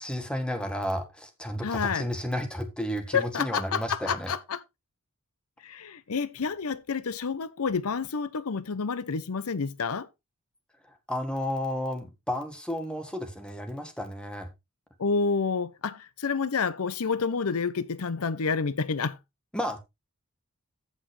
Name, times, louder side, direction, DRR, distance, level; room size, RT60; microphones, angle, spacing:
voice 1, 0.0-4.4 11.1-14.5 19.5-19.8, equal, 5° left, 1.5 m, -32 dB
voice 2, 1.6-2.1 3.1-4.6 5.6-10.1 15.0-19.2, left 5 dB, 75° left, 0.7 m, -29 dB
15.0 x 5.5 x 3.2 m
head